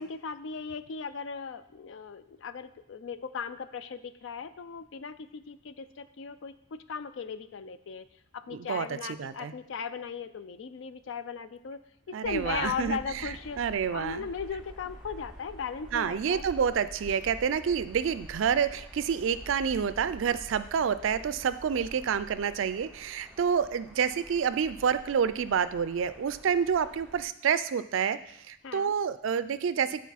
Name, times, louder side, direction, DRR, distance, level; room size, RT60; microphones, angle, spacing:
voice 1, 0.0-8.1 8.3-11.8 12.1-13.6 13.9-16.5 28.6-28.9, left 6 dB, 65° left, 12 dB, 0.4 m, -37 dB
voice 2, 8.5-9.5 12.1-14.3 15.9-30.0, right 7 dB, 70° right, 14 dB, 0.3 m, -28 dB
sound 1, 12.2-27.3, right 1 dB, 5° right, 0.6 m, -48 dB
8.4 x 4.3 x 4.1 m, 0.73 s
head